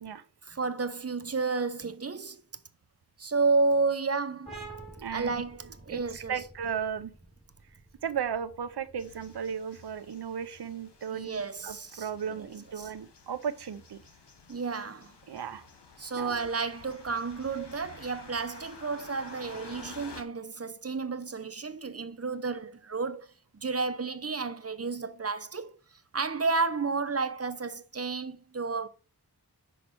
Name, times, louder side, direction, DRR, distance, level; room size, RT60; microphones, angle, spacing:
voice 1, 0.4-2.4 3.2-4.6 5.1-6.3 11.1-12.5 12.8-12.9 14.5-15.1 16.0-23.3 23.6-25.7 26.1-28.9, right 4 dB, 35° right, 0.7 m, -31 dB
sound 1, 4.5-11.8, right 3 dB, 15° left, 2.7 m, -50 dB
voice 2, 5.0-5.3 5.9-7.1 8.0-14.0 15.3-15.7 16.2-16.4, right 7 dB, 75° right, 0.7 m, -35 dB
sound 2, 9.0-20.2, left 4 dB, 90° left, 1.1 m, -51 dB
6.2 x 5.0 x 4.6 m
wide cardioid pair, 60°, 40 cm